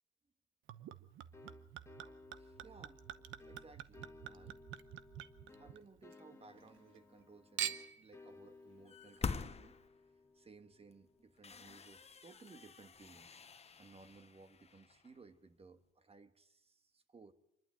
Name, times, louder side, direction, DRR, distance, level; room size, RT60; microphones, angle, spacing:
Chink clink / Liquid, 0.7-6.2 6.5-7.2 7.6-8.1 8.8-8.9, right 11 dB, 80° right, 0.9 m, -46 dB
sound 1, 1.3-11.8, left 3 dB, 15° left, 1.5 m, -60 dB
voice 1, 2.3-3.0 3.4-4.6 5.5-9.8 10.3-13.3 13.8-17.3, right 4 dB, 30° right, 10 dB, 1.5 m, -60 dB
sound 2, 8.9-10.3 10.8-10.9 11.4-15.2, left 5 dB, 30° left, 1.0 m, -46 dB
26.0 x 11.5 x 9.0 m, 0.86 s
cardioid pair, 90°, 20 cm